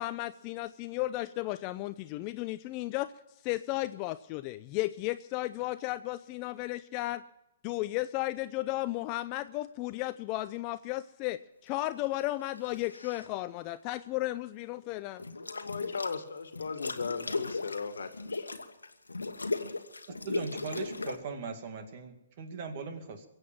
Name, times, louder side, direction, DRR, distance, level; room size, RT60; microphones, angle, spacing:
voice 1, 0.0-3.1 3.4-7.2 7.6-15.2, left 17 dB, 35° left, 12 dB, 0.5 m, -34 dB
sound 1, 12.6-13.3 15.2-16.2 16.5-21.2, left 3 dB, 85° left, 1.3 m, -37 dB
voice 2, 15.3-18.5, left 5 dB, 70° left, 9 dB, 1.7 m, -37 dB
voice 3, 20.2-23.2, right 4 dB, 45° right, 7 dB, 2.3 m, -39 dB
23.0 x 8.0 x 7.3 m, 0.92 s
figure-of-eight pair, 125°, 0 cm